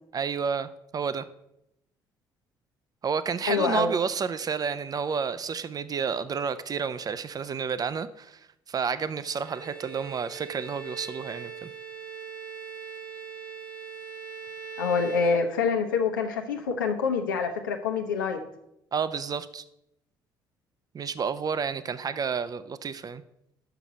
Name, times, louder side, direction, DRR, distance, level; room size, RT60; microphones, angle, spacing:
voice 1, 0.1-1.3 3.0-8.4 8.7-11.7 18.9-19.6 20.9-23.2, right 6 dB, 40° right, 14 dB, 0.6 m, -30 dB
voice 2, 3.5-3.9 14.8-18.4, left 5 dB, 85° left, 4 dB, 0.8 m, -26 dB
Bowed string instrument, 9.2-16.0, right 6 dB, 85° right, 1.5 m, -41 dB
6.0 x 5.9 x 6.9 m, 0.82 s
hypercardioid pair, 50°, 10 cm